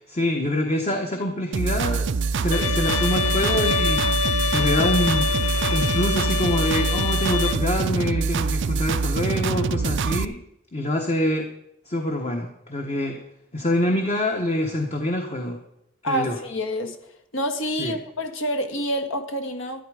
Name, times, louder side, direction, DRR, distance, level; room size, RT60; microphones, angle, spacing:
voice 1, 0.0-10.4 10.7-11.5 11.8-13.2 13.5-15.6 16.0-16.4 17.8-18.0, left 1 dB, 30° left, 1.2 m, -26 dB
sound 1, 1.5-10.2, right 4 dB, 60° right, 0.5 m, -24 dB
Bowed string instrument, 2.5-7.5, left 6 dB, 80° left, 1.0 m, -25 dB
voice 2, 16.0-17.0 17.3-19.8, equal, 65° left, 1.6 m, -27 dB
12.0 x 11.0 x 4.9 m
head